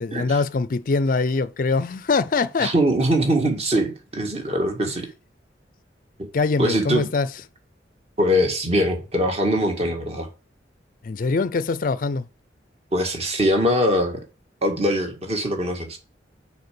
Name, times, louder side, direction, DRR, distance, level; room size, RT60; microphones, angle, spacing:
voice 1, 0.0-2.7 6.3-7.3 11.0-12.3, left 4 dB, 50° left, 0.4 m, -23 dB
voice 2, 2.6-5.1 6.6-7.1 8.2-10.3 12.9-14.2 14.6-16.0, equal, 35° right, 1.8 m, -22 dB
6.6 x 4.8 x 6.9 m
head